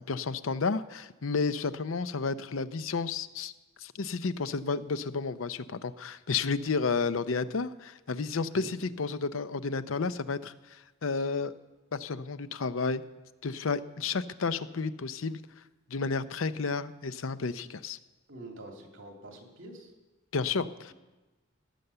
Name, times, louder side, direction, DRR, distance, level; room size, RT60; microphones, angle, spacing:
voice 1, 0.0-3.5 3.8-11.5 11.9-13.0 13.4-15.4 15.9-18.0 20.3-20.9, left 4 dB, 85° left, 13 dB, 0.6 m, -31 dB
voice 2, 18.3-19.9, right 2 dB, 65° right, 2 dB, 2.6 m, -46 dB
16.5 x 9.2 x 6.9 m, 1.1 s
head